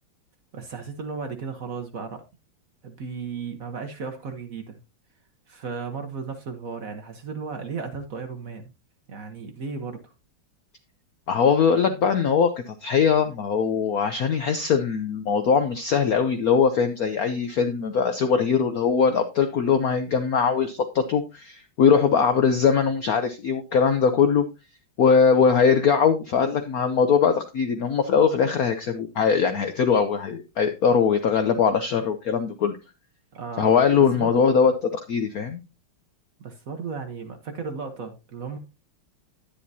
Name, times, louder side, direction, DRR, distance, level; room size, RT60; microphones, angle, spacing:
voice 1, 0.5-2.2 2.8-4.8 5.5-8.7 9.1-10.1 33.3-33.8 34.2-34.3 36.4-38.6, right 5 dB, 50° right, 1.1 m, -35 dB
voice 2, 11.3-24.5 25.0-32.8 33.6-35.6, left 6 dB, 70° left, 0.9 m, -21 dB
10.0 x 9.9 x 2.7 m
omnidirectional pair, 2.3 m